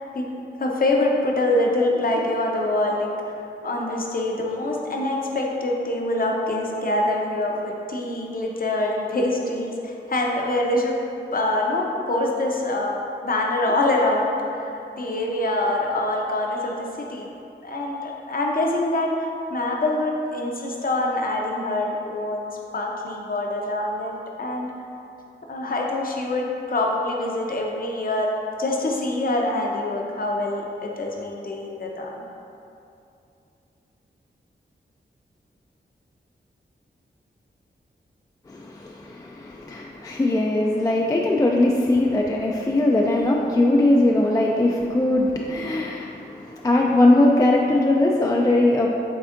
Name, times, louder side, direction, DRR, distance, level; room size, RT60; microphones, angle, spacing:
voice 1, 0.6-3.4 3.6-11.0 11.3-17.3 17.6-24.7 25.5-28.3 28.6-32.2, left 2 dB, 50° left, 0 dB, 0.7 m, -25 dB
voice 2, 38.5-48.9, left 1 dB, 20° left, -1 dB, 0.4 m, -20 dB
6.1 x 3.4 x 2.5 m, 2.7 s
cardioid pair, 50°, 19 cm